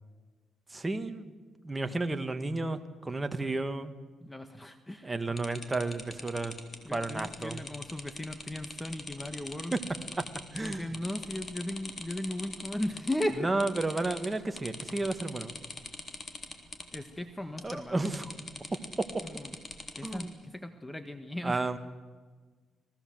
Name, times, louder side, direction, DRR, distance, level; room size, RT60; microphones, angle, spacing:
voice 1, 0.7-1.3 1.6-3.9 5.0-6.5 6.9-7.6 9.7-9.8 10.5-10.9 13.4-15.6 17.6-18.3 20.0-20.3 21.4-21.8, right 2 dB, 20° right, 8 dB, 1.9 m, -32 dB
voice 2, 4.2-5.1 6.8-9.8 10.6-13.5 16.9-18.0 19.2-19.5 19.9-21.7, left 1 dB, 10° left, 9 dB, 1.5 m, -36 dB
sound 1, 5.4-13.3 13.6-14.3 14.6-17.0 17.6-17.8 18.1-20.2, left 3 dB, 35° left, 3.6 m, -42 dB
27.0 x 19.0 x 8.0 m, 1.4 s
cardioid pair, 90°, 0 cm